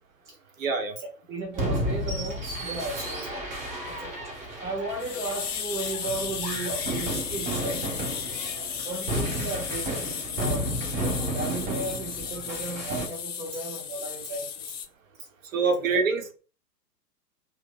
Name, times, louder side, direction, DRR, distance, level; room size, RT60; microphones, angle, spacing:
voice 1, 0.6-1.0 15.5-16.3, right 4 dB, 55° right, 0.9 m, -25 dB
voice 2, 1.3-3.5 3.8-4.1 4.6-7.8 8.8-14.6 15.2-15.9, right 2 dB, 5° right, 0.4 m, -35 dB
sound 1, 1.5-13.1, right 1 dB, 25° right, 0.9 m, -33 dB
sound 2, 5.0-14.9, left 7 dB, 50° left, 0.7 m, -34 dB
2.7 x 2.1 x 3.7 m
figure-of-eight pair, 105°, 49 cm